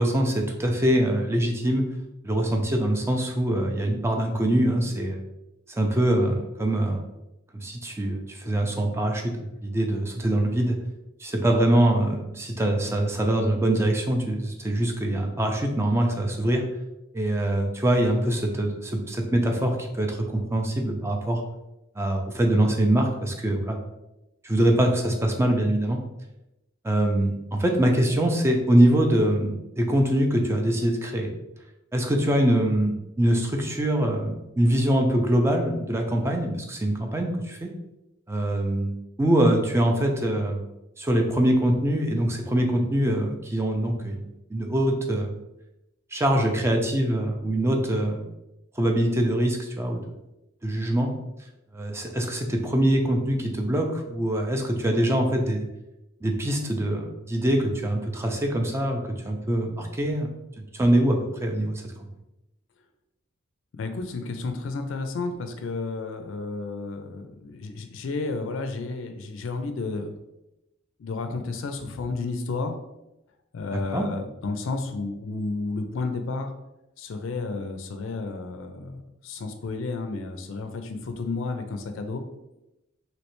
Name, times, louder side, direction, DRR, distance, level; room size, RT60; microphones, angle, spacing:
voice 1, 0.0-1.8 2.2-5.2 5.7-7.0 7.5-10.8 11.2-16.6 17.1-21.4 22.0-23.8 24.4-26.0 26.8-31.3 31.9-37.7 38.3-38.9 39.2-40.6 41.0-44.2 44.5-45.4 46.1-48.3 48.8-50.1 50.6-51.1 51.7-55.7 56.2-60.3 60.6-61.8 73.7-74.1, right 1 dB, 15° right, 3 dB, 0.4 m, -23 dB
voice 2, 63.8-70.1 71.0-72.8 73.5-76.5 77.0-82.2, left 3 dB, 70° left, 7 dB, 0.4 m, -32 dB
3.2 x 2.8 x 3.0 m, 0.93 s
head